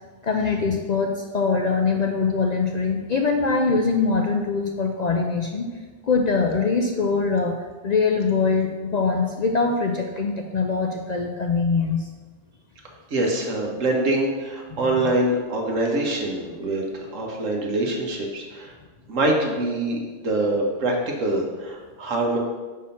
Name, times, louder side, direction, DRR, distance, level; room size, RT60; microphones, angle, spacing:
voice 1, 0.2-5.7 6.1-7.6 7.8-12.1 14.7-15.1, left 4 dB, 60° left, 2 dB, 0.4 m, -23 dB
voice 2, 13.1-18.7 19.1-22.4, right 2 dB, 85° right, 0 dB, 1.6 m, -24 dB
5.8 x 4.8 x 5.8 m, 1.3 s
omnidirectional pair, 1.3 m